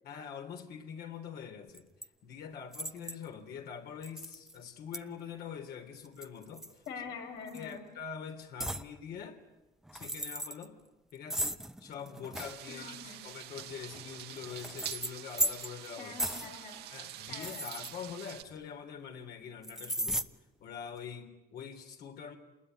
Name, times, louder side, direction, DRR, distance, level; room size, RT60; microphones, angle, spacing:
voice 1, 0.0-1.9 2.2-6.8 7.5-9.4 9.9-10.8 11.1-16.1 16.9-20.3 20.6-22.4, left 7 dB, 70° left, 4 dB, 3.4 m, -44 dB
sound 1, 1.7-2.1 2.7-3.3 4.0-4.6 4.9-5.0 6.0-7.1 7.5-7.7 8.6-8.9 9.8-10.7 11.3-12.6 13.6-15.9 16.2-16.5 17.3-18.6 19.6-20.3, right 1 dB, 5° right, 0.9 m, -36 dB
voice 2, 6.9-7.8 12.7-13.2 16.0-16.9 17.3-17.7, left 5 dB, 90° left, 2 dB, 6.0 m, -44 dB
sound 2, 12.3-18.4, right 12 dB, 80° right, 1.3 m, -46 dB
27.5 x 20.5 x 9.7 m, 0.99 s
cardioid pair, 110°, 17 cm